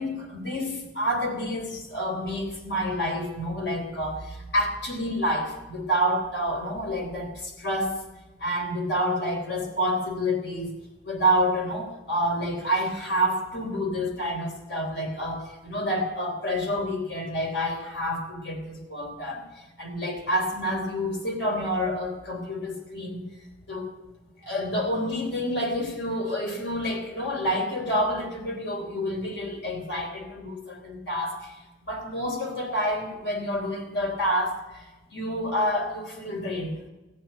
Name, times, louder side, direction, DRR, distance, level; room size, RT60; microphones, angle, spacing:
voice 1, 0.0-7.9 8.4-10.7 11.0-19.4 19.8-23.2 23.7-23.9 24.4-31.5 31.8-34.9 35.1-36.7, equal, 65° left, 1 dB, 3.5 m, -28 dB
15.5 x 8.9 x 8.1 m, 1.1 s
head